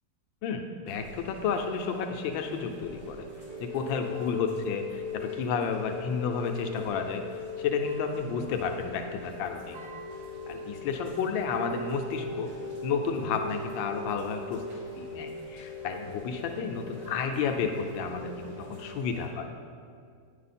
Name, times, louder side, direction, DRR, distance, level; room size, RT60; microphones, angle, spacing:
voice 1, 0.4-3.3 3.6-7.2 7.6-9.8 10.5-12.5 12.8-14.6 15.0-19.5, left 6 dB, 85° left, 4 dB, 1.3 m, -31 dB
Chime / Rain, 0.9-19.3, left 2 dB, 85° right, 3.3 m, -40 dB
9.5 x 5.6 x 4.1 m, 2.2 s
omnidirectional pair, 2.0 m